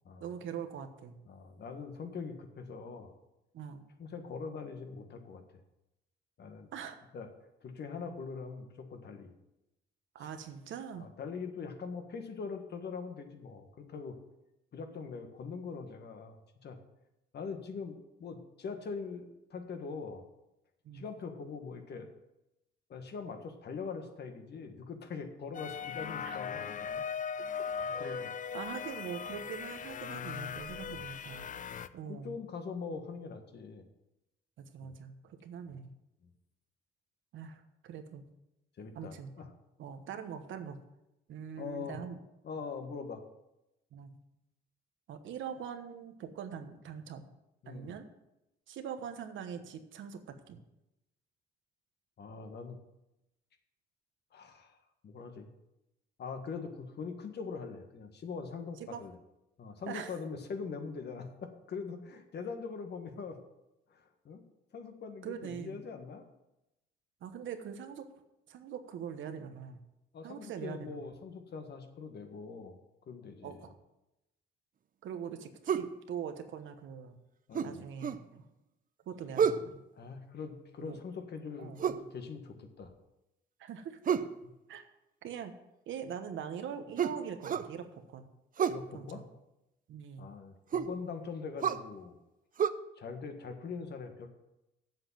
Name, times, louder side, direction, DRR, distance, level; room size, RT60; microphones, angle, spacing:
voice 1, 0.2-1.2 3.5-3.9 6.7-7.0 10.1-11.1 20.8-21.1 26.2-26.4 28.0-28.2 28.5-31.5 31.9-32.3 34.6-35.9 37.3-38.3 38.9-39.3 39.8-40.8 41.3-42.2 43.9-44.2 45.1-47.3 47.7-48.1 48.7-50.6 58.9-59.0 59.9-60.1 65.2-65.8 67.2-68.1 68.5-69.8 70.2-71.1 73.4-73.7 75.0-77.2 77.6-78.4 79.1-79.8 80.8-81.0 81.6-81.9 83.6-84.0 84.7-84.9 85.2-85.5 85.9-88.3 88.9-89.3 89.9-90.3, right 7 dB, 75° right, 8 dB, 1.2 m, -43 dB
voice 2, 1.3-3.1 4.0-5.4 6.4-6.7 7.1-7.3 7.6-9.3 10.2-10.3 10.9-14.2 14.7-16.8 17.3-20.2 20.9-22.1 22.9-27.0 28.0-28.3 30.8-31.0 31.7-33.8 34.8-34.9 36.2-36.3 38.8-39.5 41.6-42.0 42.4-43.2 47.6-48.0 52.2-52.8 54.3-54.8 55.0-55.5 56.2-59.2 59.6-63.4 63.9-64.4 64.7-66.2 70.1-72.8 73.1-73.7 77.5-77.8 80.0-82.9 84.4-84.5 88.7-89.2 90.2-92.2 93.0-94.3, left 5 dB, 60° left, 6 dB, 1.6 m, -42 dB
sound 1, 25.5-31.9, left 7 dB, 40° left, 0.5 m, -39 dB
sound 2, 75.7-75.9 77.5-78.2 79.4-79.7 81.8-82.1 84.0-84.4 87.0-87.7 88.6-88.8 90.7-90.9 91.6-91.8 92.6-92.7, right 7 dB, 45° right, 0.6 m, -30 dB
7.9 x 7.4 x 7.5 m, 0.92 s
cardioid pair, 90°, 20 cm